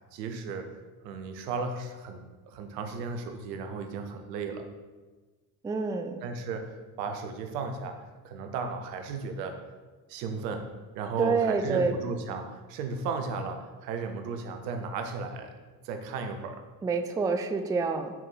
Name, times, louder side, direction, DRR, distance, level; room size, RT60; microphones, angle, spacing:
voice 1, 0.1-0.7 1.0-4.6 6.2-9.6 10.1-10.7 10.9-15.5 15.8-16.6, right 4 dB, 80° right, 6 dB, 0.8 m, -35 dB
voice 2, 5.6-6.2 11.2-12.0 16.8-18.1, right 4 dB, 10° right, 8 dB, 0.3 m, -27 dB
6.0 x 4.3 x 4.1 m, 1.3 s
hypercardioid pair, 55°, 48 cm